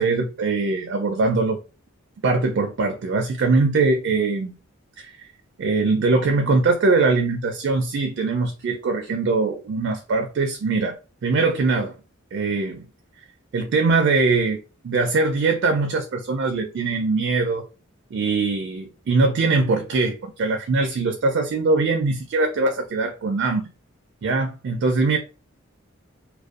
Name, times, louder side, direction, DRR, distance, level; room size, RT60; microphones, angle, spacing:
voice 1, 0.0-1.6 2.2-4.5 5.0-5.1 5.6-11.0 11.2-11.9 12.3-12.8 13.5-14.6 14.8-17.7 18.1-23.7 24.2-25.2, right 3 dB, 55° right, 0.4 m, -22 dB
2.5 x 2.1 x 2.3 m
head